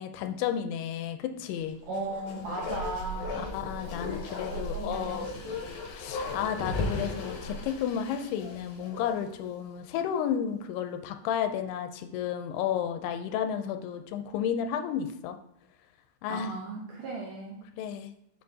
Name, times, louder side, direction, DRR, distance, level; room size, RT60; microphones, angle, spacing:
voice 1, 0.0-1.8 3.3-5.3 5.9-15.4 16.2-16.6 17.7-18.1, left 9 dB, 85° left, 7 dB, 2.6 m, -32 dB
Bark, 1.9-9.5 9.8-9.9, left 2 dB, 65° left, 2.1 m, -36 dB
voice 2, 1.9-3.5 4.3-5.6 16.3-17.7, right 2 dB, 70° right, -2 dB, 2.2 m, -37 dB
6.7 x 6.6 x 2.8 m, 0.77 s
omnidirectional pair, 4.7 m